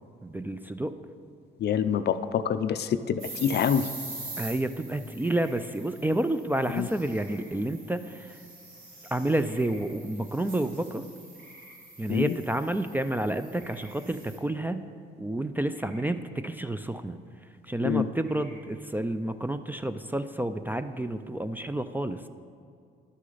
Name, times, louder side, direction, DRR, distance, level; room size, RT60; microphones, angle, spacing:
voice 1, 0.2-0.9 4.4-8.4 9.1-11.0 12.0-14.8 15.2-17.2 17.6-22.2, right 1 dB, 10° right, 10 dB, 0.3 m, -30 dB
voice 2, 1.6-3.9 6.7-6.9 12.1-12.3 17.8-18.1, left 8 dB, 55° left, 11 dB, 0.4 m, -26 dB
sound 1, 3.2-14.4, right 2 dB, 80° right, 2.3 m, -44 dB
sound 2, 5.2-5.6 7.0-7.4 9.4-9.9 11.3-11.8 13.5-13.9 15.7-16.1 18.2-18.6, right 1 dB, 55° right, 1.8 m, -53 dB
11.0 x 6.3 x 3.9 m, 2.3 s
cardioid pair, 90°, 20 cm